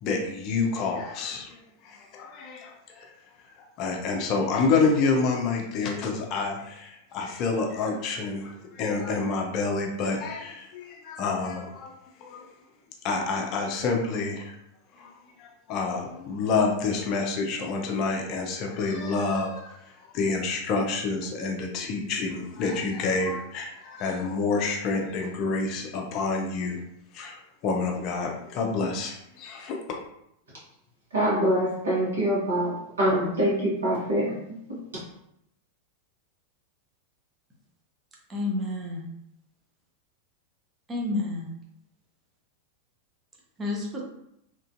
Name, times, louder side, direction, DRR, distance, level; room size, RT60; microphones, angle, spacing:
voice 1, 0.0-3.1 3.8-11.9 12.2-12.5 13.0-14.5 14.9-15.1 15.4-26.8 27.1-27.4 27.6-29.8, left 4 dB, 40° left, 1 dB, 0.5 m, -28 dB
voice 2, 31.1-34.3, equal, 70° right, -5 dB, 1.2 m, -24 dB
voice 3, 38.3-39.0 40.9-41.5 43.6-44.0, left 2 dB, 15° right, -2 dB, 0.7 m, -29 dB
2.9 x 2.5 x 2.5 m, 0.77 s
figure-of-eight pair, 90°, 0 cm